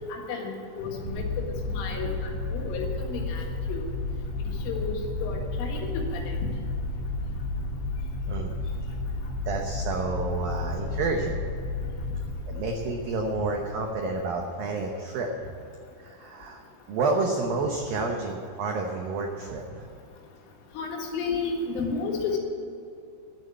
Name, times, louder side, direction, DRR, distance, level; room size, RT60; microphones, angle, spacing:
voice 1, 0.1-1.3 1.7-3.4 3.7-3.9 4.6-6.5 20.8-22.4, left 4 dB, 80° left, 0 dB, 4.4 m, -32 dB
sound 1, 1.0-14.0, left 2 dB, 40° right, 2.4 m, -32 dB
voice 2, 9.5-11.4 12.5-15.3 16.0-19.9, right 3 dB, 90° right, 2 dB, 2.0 m, -30 dB
12.0 x 9.1 x 8.4 m, 2.5 s
omnidirectional pair, 5.7 m